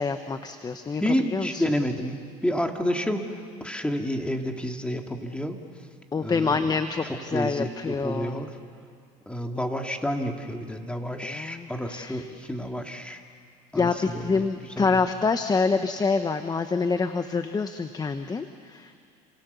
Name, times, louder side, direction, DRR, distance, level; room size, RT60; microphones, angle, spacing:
voice 1, 0.0-1.6 6.1-8.4 11.2-12.2 13.7-19.1, left 4 dB, 20° left, 8 dB, 1.1 m, -27 dB
voice 2, 1.0-3.3 3.6-5.6 6.2-6.7 7.3-8.5 9.3-13.2 13.7-14.5 14.8-15.0, equal, 5° left, 3 dB, 2.6 m, -29 dB
30.0 x 26.5 x 7.0 m, 2.3 s
supercardioid pair, 105°, 18 cm